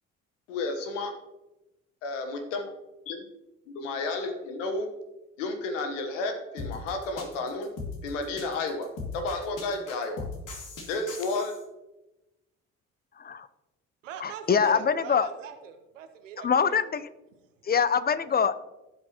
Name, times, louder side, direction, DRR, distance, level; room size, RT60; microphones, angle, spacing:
voice 1, 0.5-1.2 2.0-2.7 3.1-3.3 3.7-4.9 5.4-7.7 8.0-10.3 10.9-11.6, left 3 dB, 80° left, 6 dB, 1.2 m, -32 dB
sound 1, 6.6-11.6, left 4 dB, 55° left, 2.4 m, -39 dB
voice 2, 13.2-13.5 14.2-15.3 16.4-17.1 17.6-18.5, left 6 dB, 25° left, 15 dB, 0.6 m, -24 dB
voice 3, 14.0-16.8 17.6-17.7, right 8 dB, 85° right, 8 dB, 0.9 m, -42 dB
16.0 x 6.1 x 2.9 m, 1.0 s
hypercardioid pair, 45°, 37 cm